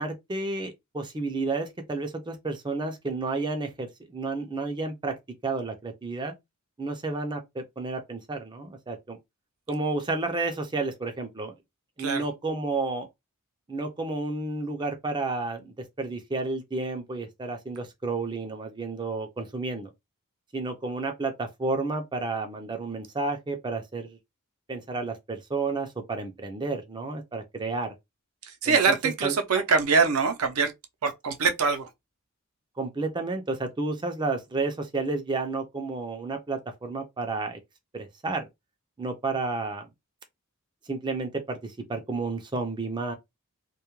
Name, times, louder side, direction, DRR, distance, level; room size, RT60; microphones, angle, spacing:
voice 1, 0.0-5.1 5.4-6.3 6.8-9.2 9.7-11.5 12.0-13.1 13.7-19.9 20.5-24.2 24.7-27.9 28.6-28.9 29.2-29.3 32.8-37.6 37.9-38.5 39.0-39.9 40.9-43.1, right 3 dB, 20° right, 0.4 m, -31 dB
voice 2, 28.4-30.7 31.0-31.9, right 5 dB, 70° right, 0.6 m, -24 dB
2.2 x 2.1 x 3.0 m
head